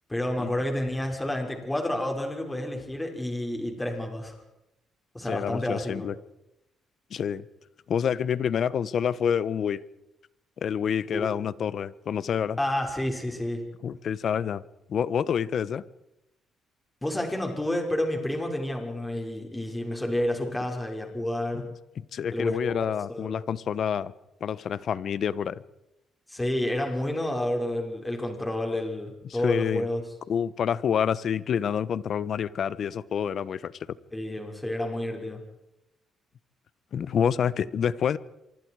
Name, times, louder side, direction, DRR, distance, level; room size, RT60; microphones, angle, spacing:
voice 1, 0.1-4.4 5.1-6.1 11.1-11.3 12.6-13.6 17.0-21.7 22.3-23.4 26.3-30.0 34.1-35.4, left 1 dB, 10° left, 2 dB, 5.7 m, -30 dB
voice 2, 5.3-6.2 7.1-7.4 7.9-9.8 10.6-12.6 13.8-14.6 14.9-15.8 22.0-24.1 24.4-25.6 29.2-29.8 30.3-33.7 36.9-38.2, left 8 dB, 60° left, 18 dB, 1.0 m, -27 dB
27.5 x 24.5 x 4.8 m, 0.88 s
cardioid pair, 90°, 0 cm